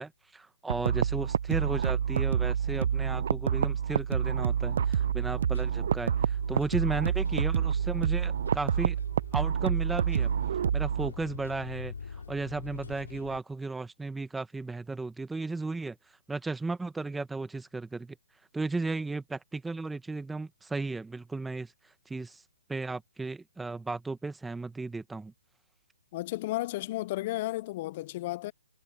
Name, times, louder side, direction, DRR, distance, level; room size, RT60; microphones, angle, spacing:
voice 1, 0.0-9.0 9.3-10.3 10.7-18.2 18.5-21.7 22.1-22.4 22.7-25.3, right 3 dB, 5° right, 1.2 m, -35 dB
sound 1, 0.7-11.1, right 8 dB, 60° right, 0.4 m, -28 dB
sound 2, 4.6-13.4, left 5 dB, 85° left, 3.2 m, -44 dB
voice 2, 26.1-28.5, left 17 dB, 35° left, 0.4 m, -33 dB
hypercardioid pair, 150°, 0 cm